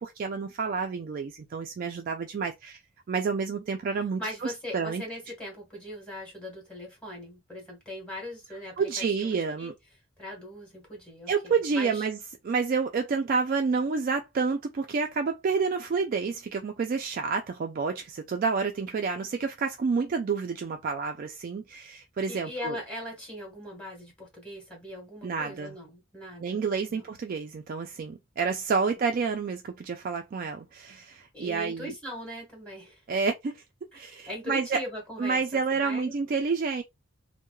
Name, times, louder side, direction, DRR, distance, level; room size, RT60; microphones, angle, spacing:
voice 1, 0.0-2.8 3.1-5.0 8.8-9.7 11.3-12.2 12.4-22.8 25.2-25.7 26.4-31.9 33.1-33.6 33.9-34.8 35.2-36.8, right 5 dB, 45° right, 0.3 m, -29 dB
voice 2, 4.2-9.7 10.2-12.1 22.3-27.0 31.3-33.0 33.9-36.1, left 1 dB, 5° left, 1.3 m, -40 dB
3.0 x 2.1 x 2.2 m
head